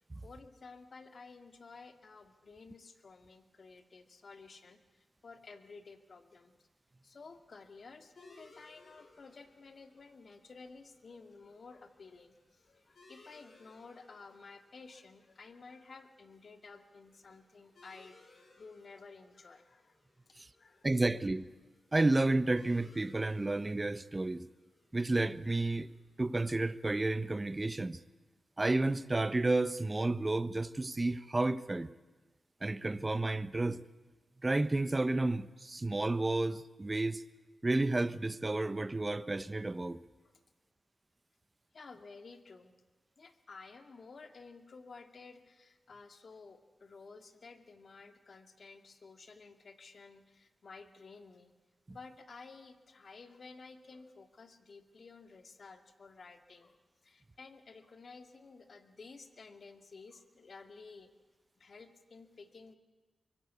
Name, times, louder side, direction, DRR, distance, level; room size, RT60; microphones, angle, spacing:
voice 1, 0.1-6.5 7.0-20.0 20.3-20.9 40.2-40.4 41.7-42.7 43.2-51.5 51.9-61.1 61.6-62.8, left 4 dB, 60° left, 2.4 m, -53 dB
sound 1, 8.2-27.3, left 3 dB, 75° left, 7.8 m, -64 dB
voice 2, 20.8-21.4 21.9-24.5 24.9-25.9 26.2-28.0 28.6-31.9 32.6-33.8 34.4-37.2 37.6-40.0, right 2 dB, 25° right, 1.1 m, -31 dB
24.0 x 23.5 x 8.4 m
cardioid pair, 70°, 0 cm